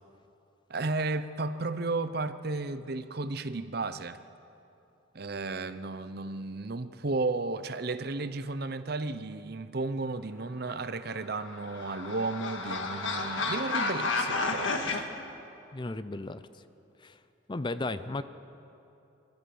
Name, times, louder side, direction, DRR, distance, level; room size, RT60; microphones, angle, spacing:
voice 1, 0.7-4.2 5.1-15.1, right 3 dB, 50° right, 0.7 m, -33 dB
sound 1, 11.1-15.0, left 3 dB, 80° left, 1.8 m, -31 dB
voice 2, 15.7-16.6 17.0-17.2 17.5-18.2, left 2 dB, 25° left, 0.5 m, -35 dB
26.0 x 13.0 x 7.8 m
head